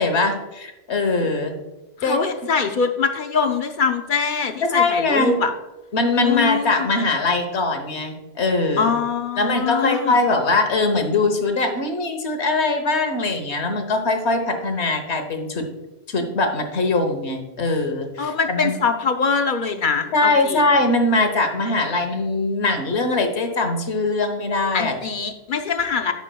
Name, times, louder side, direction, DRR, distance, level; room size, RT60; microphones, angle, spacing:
voice 1, 0.0-1.6 2.0-2.2 4.7-5.4 5.9-8.9 9.4-15.7 16.1-18.8 20.1-24.9, left 3 dB, 85° left, 6 dB, 1.3 m, -21 dB
voice 2, 2.0-5.5 6.2-6.9 8.8-10.2 18.2-20.6 24.7-26.1, left 5 dB, 55° left, 7 dB, 0.7 m, -23 dB
13.0 x 6.1 x 2.2 m, 1.0 s
omnidirectional pair, 1.1 m